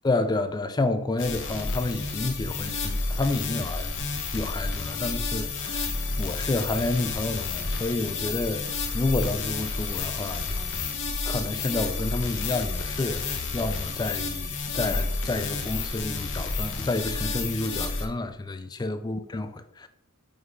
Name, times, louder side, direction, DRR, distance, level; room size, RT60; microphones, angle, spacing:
voice 1, 0.0-4.1 4.3-10.8 11.3-19.9, left 2 dB, 20° left, 0.4 m, -30 dB
sound 1, 1.2-18.1, left 3 dB, 60° left, 0.9 m, -30 dB
5.3 x 4.0 x 4.6 m
head